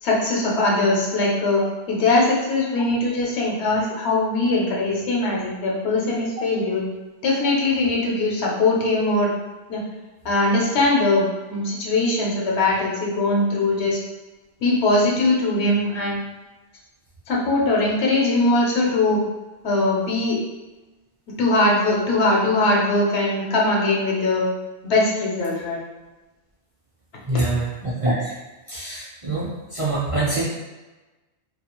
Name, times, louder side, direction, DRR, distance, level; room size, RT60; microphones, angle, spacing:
voice 1, 0.0-6.8 7.2-9.3 9.7-9.8 10.2-14.0 14.6-16.2 17.3-19.2 19.6-20.4 21.4-24.5 24.8-25.8, left 2 dB, 75° left, -3 dB, 0.9 m, -21 dB
voice 2, 27.3-28.3 28.7-30.4, right 2 dB, 40° right, -9 dB, 0.5 m, -25 dB
2.3 x 2.3 x 2.9 m, 1.1 s
omnidirectional pair, 1.1 m